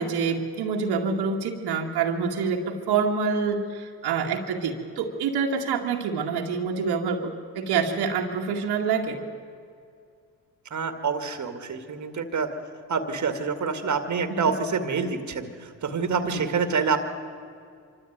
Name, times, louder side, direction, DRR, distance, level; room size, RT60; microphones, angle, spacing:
voice 1, 0.0-9.2 14.3-14.5 16.2-16.4, right 5 dB, 80° right, 1 dB, 2.1 m, -27 dB
voice 2, 10.7-12.5 12.9-17.0, right 5 dB, 45° right, 8 dB, 2.1 m, -27 dB
24.5 x 14.0 x 9.4 m, 2.3 s
supercardioid pair, 65°, 39 cm